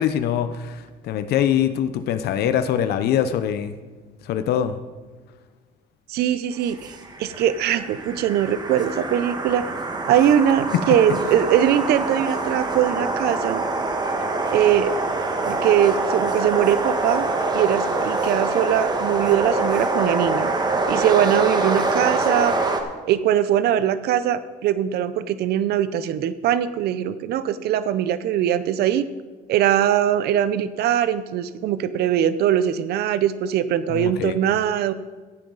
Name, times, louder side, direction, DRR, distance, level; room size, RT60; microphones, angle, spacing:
voice 1, 0.0-3.7 4.2-4.7 33.9-34.4, left 9 dB, 70° left, 10 dB, 0.7 m, -23 dB
voice 2, 6.1-9.6 10.1-13.6 14.5-14.9 15.5-20.5 20.9-22.5 23.1-29.1 29.5-34.9, right 10 dB, 70° right, 14 dB, 0.6 m, -21 dB
sound 1, 6.7-22.8, right 3 dB, 25° right, 1.4 m, -25 dB
15.0 x 8.7 x 4.0 m, 1.4 s
cardioid pair, 110°, 17 cm